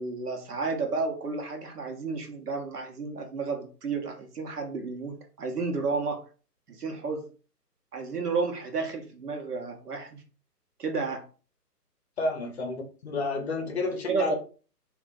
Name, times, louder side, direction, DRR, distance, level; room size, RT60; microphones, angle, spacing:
voice 1, 0.0-6.2 6.7-7.3 7.9-10.2 10.8-11.2 14.1-14.4, right 4 dB, 70° right, 3 dB, 1.0 m, -32 dB
voice 2, 12.2-14.4, left 3 dB, 40° left, 2 dB, 0.6 m, -30 dB
2.4 x 2.1 x 3.8 m, 0.36 s
figure-of-eight pair, 140°, 49 cm